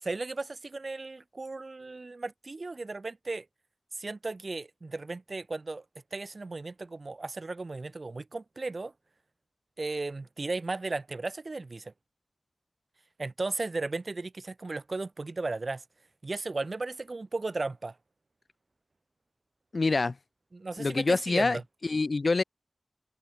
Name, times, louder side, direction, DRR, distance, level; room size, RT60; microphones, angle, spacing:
voice 1, 0.0-3.4 4.0-5.8 6.1-8.9 9.8-11.9 13.2-15.8 16.2-17.9 20.5-21.6, right 3 dB, 60° right, 4.0 m, -35 dB
voice 2, 19.7-20.1 20.8-22.4, left 3 dB, 70° left, 6.1 m, -26 dB
open air
wide cardioid pair, 50°, 0 cm